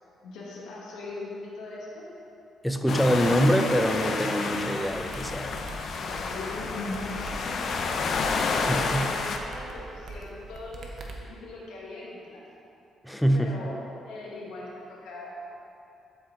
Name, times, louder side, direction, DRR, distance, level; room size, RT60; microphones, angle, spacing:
voice 1, 0.2-2.0 5.9-7.8 8.4-10.9 11.2-12.4 13.3-15.3, left 2 dB, 85° left, -4 dB, 1.7 m, -40 dB
voice 2, 2.6-5.5 8.7-9.1 13.0-13.5, equal, 5° left, 5 dB, 0.6 m, -24 dB
sound 1, 2.9-9.4, left 4 dB, 60° left, 0.6 m, -30 dB
sound 2, 4.8-11.1, right 2 dB, 55° right, 0.9 m, -42 dB
12.5 x 4.3 x 3.8 m, 2.8 s
cardioid pair, 90°, 0 cm